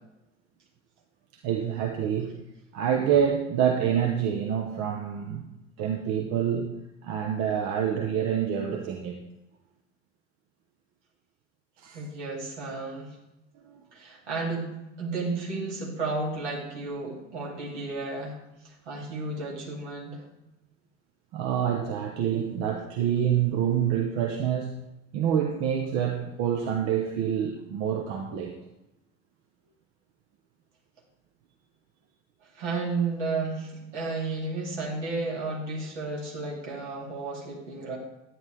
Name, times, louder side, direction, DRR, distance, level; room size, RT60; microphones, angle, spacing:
voice 1, 1.4-2.4 2.7-5.4 5.8-6.7 7.0-9.2 11.8-12.0 13.6-13.8 21.3-24.7 25.1-28.5, right 8 dB, 45° right, 3 dB, 1.1 m, -27 dB
voice 2, 11.9-13.2 13.9-20.2 32.5-38.0, right 3 dB, 70° right, -2 dB, 2.8 m, -33 dB
10.5 x 9.5 x 3.4 m, 0.94 s
figure-of-eight pair, 70°, 37 cm